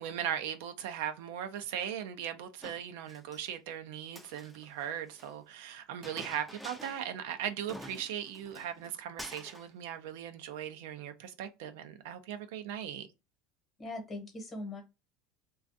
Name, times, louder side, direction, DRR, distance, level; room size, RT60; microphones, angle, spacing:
voice 1, 0.0-13.1, right 9 dB, 80° right, 0.4 m, -38 dB
Chink clink, 2.6-3.5 4.1-5.3 6.0-7.2 7.4-7.5 7.7-8.9 9.2-9.7, equal, ahead, 0.4 m, -48 dB
voice 2, 13.8-14.8, left 2 dB, 30° left, 0.9 m, -40 dB
2.3 x 2.3 x 2.5 m
supercardioid pair, 105°, 0 cm